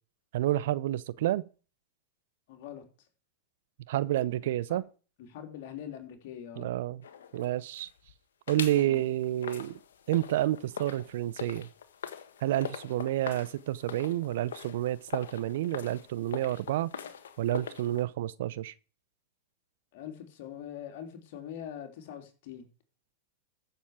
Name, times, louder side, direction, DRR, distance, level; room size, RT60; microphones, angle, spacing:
voice 1, 0.3-1.4 3.9-4.8 6.6-7.0 7.3-7.9 8.5-9.8 10.1-11.7 12.4-16.9 17.4-18.7, right 14 dB, 70° right, 0.8 m, -29 dB
voice 2, 2.5-2.8 4.4-4.8 5.2-6.7 8.8-9.0 19.9-22.6, left 9 dB, 60° left, 3.3 m, -43 dB
sound 1, 7.0-8.1 8.5-18.0, left 8 dB, 80° left, 1.4 m, -43 dB
14.5 x 7.2 x 5.0 m
hypercardioid pair, 105°, 0 cm